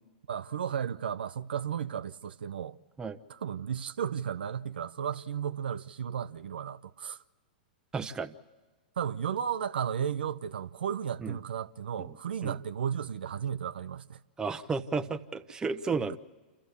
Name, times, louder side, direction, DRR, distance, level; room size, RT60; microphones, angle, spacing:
voice 1, 0.3-2.8 3.3-7.2 9.0-14.2 15.9-16.0, right 8 dB, 80° right, 0.6 m, -34 dB
voice 2, 7.9-8.3 11.2-11.4 12.0-12.2 12.4-12.6 14.4-16.2, right 4 dB, 15° right, 0.9 m, -33 dB
27.5 x 14.0 x 8.2 m
hypercardioid pair, 115°, 5 cm